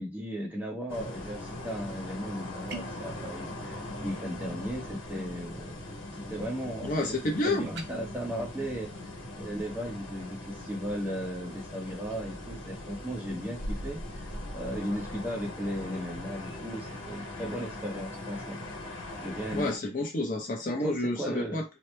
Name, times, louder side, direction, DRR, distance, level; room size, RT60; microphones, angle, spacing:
voice 1, 0.0-5.8 6.3-6.9 7.4-8.9 9.4-14.0 14.5-18.6 19.2-19.7 20.6-21.6, equal, 10° right, 0.8 m, -36 dB
sound 1, 0.9-19.8, left 1 dB, 85° left, 1.2 m, -40 dB
sound 2, 2.7-3.1 7.7-7.9, right 4 dB, 55° right, 0.5 m, -41 dB
voice 2, 6.8-7.7 19.5-21.6, left 2 dB, 40° left, 0.7 m, -30 dB
2.9 x 2.1 x 3.3 m
head